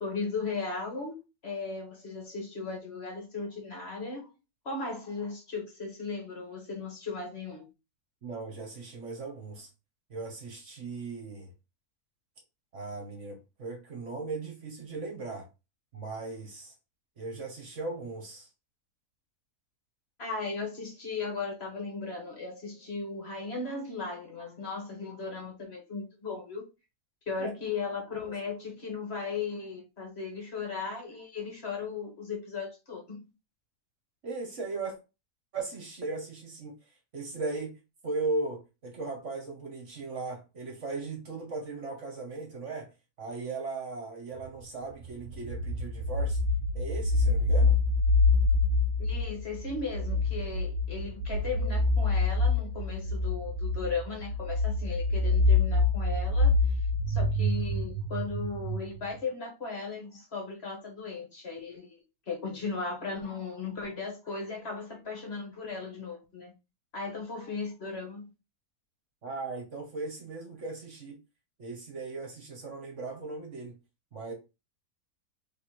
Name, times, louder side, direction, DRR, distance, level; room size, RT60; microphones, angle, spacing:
voice 1, 0.0-1.1 1.4-4.3 4.6-7.7 20.2-26.7 27.3-33.3 49.0-56.5 57.1-66.5 66.9-68.3, left 4 dB, 45° left, 1.5 m, -37 dB
voice 2, 8.2-9.7 10.1-11.5 12.7-15.5 15.9-16.7 17.2-18.5 27.4-27.5 28.3-28.4 34.2-35.0 35.5-36.8 37.1-37.8 38.0-42.9 43.2-46.4 46.7-47.8 69.2-71.2 71.6-73.8 74.1-74.3, right 3 dB, 50° right, 1.4 m, -37 dB
sound 1, 44.5-44.6 45.0-59.0, left 3 dB, 70° right, 1.1 m, -26 dB
3.3 x 3.2 x 4.3 m
omnidirectional pair, 1.6 m